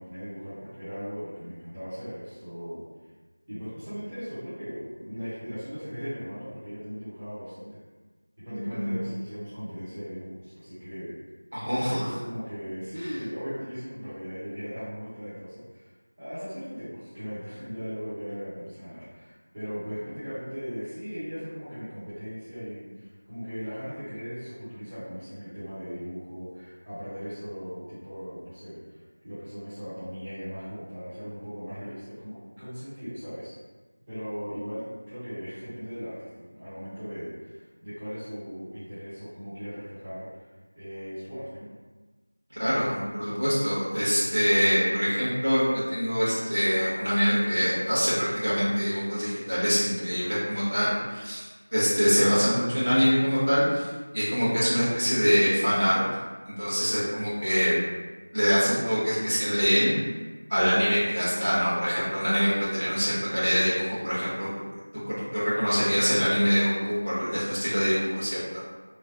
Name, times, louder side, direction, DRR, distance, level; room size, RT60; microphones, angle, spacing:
voice 1, 0.0-2.8 3.5-7.8 8.4-11.2 11.8-15.9 16.2-33.5 34.1-40.5 40.7-41.7, equal, 15° right, -17 dB, 0.8 m, -38 dB
voice 2, 8.5-9.0 11.5-12.1 42.6-53.9 54.1-55.9 56.6-57.7 58.3-59.9 60.5-64.5 65.1-68.7, equal, 65° right, -9 dB, 1.5 m, -24 dB
3.1 x 2.2 x 2.6 m, 1.3 s
figure-of-eight pair, 175°, 0 cm